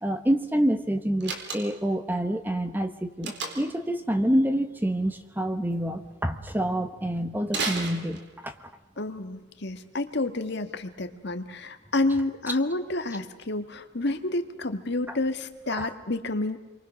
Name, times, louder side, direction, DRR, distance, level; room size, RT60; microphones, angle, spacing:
voice 1, 0.0-8.5 15.7-15.9, right 1 dB, 10° right, 8 dB, 1.1 m, -27 dB
Slam, 1.2-2.0 3.2-3.8 7.5-8.6, right 4 dB, 55° right, 4.0 m, -33 dB
voice 2, 9.0-16.6, left 2 dB, 55° left, 8 dB, 1.7 m, -29 dB
29.0 x 23.5 x 6.3 m, 1.1 s
head